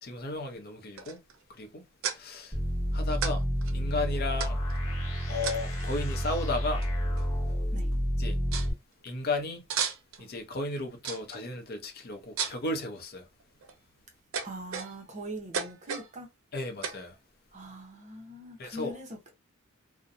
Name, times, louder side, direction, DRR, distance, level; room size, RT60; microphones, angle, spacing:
voice 1, 0.0-1.2 1.6-1.8 2.1-2.5 2.9-3.4 3.7-4.6 5.3-6.8 8.2-8.4 9.0-9.6 10.2-13.2 16.5-17.1 18.6-19.0, left 2 dB, 50° left, 0.6 m, -34 dB
sound 1, 1.0-1.4 2.0-2.2 3.2-3.3 3.6-3.7 4.4-4.8 5.4-5.8 6.8-6.9 7.2-7.6 7.9-8.0 8.5-8.7 9.7-10.2 11.0-11.4 12.4-12.7 13.4-13.7 14.3-15.1 15.5-16.1 16.8-17.0, right 7 dB, 90° right, 0.5 m, -34 dB
sound 2, 2.5-8.7, equal, 15° left, 1.2 m, -30 dB
voice 2, 14.4-16.3 17.5-19.3, right 1 dB, 35° right, 0.7 m, -42 dB
2.7 x 2.1 x 2.5 m
head